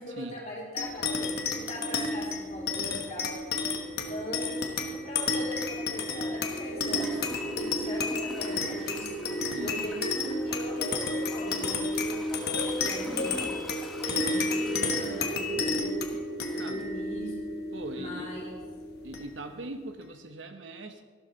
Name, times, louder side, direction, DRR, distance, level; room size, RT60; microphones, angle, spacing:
voice 1, 0.0-3.3 3.9-4.5 4.8-7.2 7.5-9.2 9.6-12.2 12.7-13.5 14.0-16.2 16.5-17.3 17.9-18.5, equal, 35° left, -5 dB, 4.0 m, -40 dB
sound 1, 0.8-19.6, left 2 dB, 55° left, 1.3 m, -31 dB
Gurgling / Toilet flush, 6.9-16.3 16.8-16.9, equal, ahead, 1.4 m, -44 dB
voice 2, 9.4-9.9 16.5-16.8 17.7-18.3 19.0-21.0, right 2 dB, 90° right, 7 dB, 1.1 m, -41 dB
14.0 x 12.5 x 4.0 m, 1.5 s
head